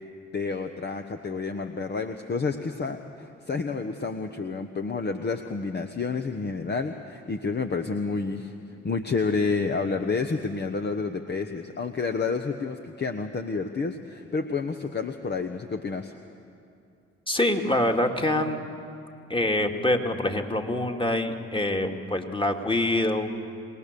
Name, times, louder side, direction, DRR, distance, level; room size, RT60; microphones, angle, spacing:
voice 1, 0.3-8.5 8.8-16.1, left 4 dB, 35° left, 6 dB, 1.2 m, -29 dB
voice 2, 17.3-18.6 19.3-23.3, left 1 dB, 15° left, 3 dB, 2.5 m, -25 dB
26.0 x 19.5 x 6.9 m, 2.5 s
hypercardioid pair, 45°, 29 cm